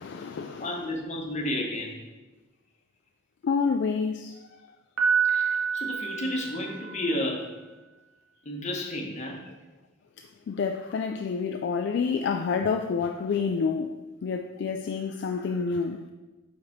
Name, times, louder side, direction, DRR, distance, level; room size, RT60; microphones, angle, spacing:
voice 1, 0.0-0.7 3.4-4.4 6.9-7.0 10.2-13.9 14.2-16.1, left 5 dB, 55° left, 0.3 m, -28 dB
voice 2, 0.6-2.0 5.3-7.5 8.4-9.4, left 1 dB, 35° left, 1.0 m, -32 dB
Piano, 5.0-7.1, right 6 dB, 90° right, 0.9 m, -27 dB
4.9 x 4.1 x 5.8 m
head